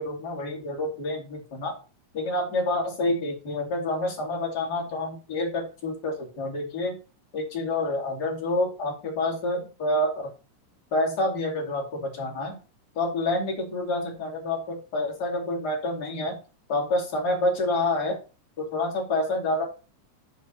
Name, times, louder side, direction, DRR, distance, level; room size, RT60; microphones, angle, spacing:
voice 1, 0.0-1.7 2.1-7.0 7.3-10.2 10.9-12.6 12.9-16.4 16.7-18.1 18.6-19.6, left 2 dB, 35° left, 0 dB, 2.8 m, -28 dB
6.3 x 5.3 x 6.9 m, 0.33 s
omnidirectional pair, 3.7 m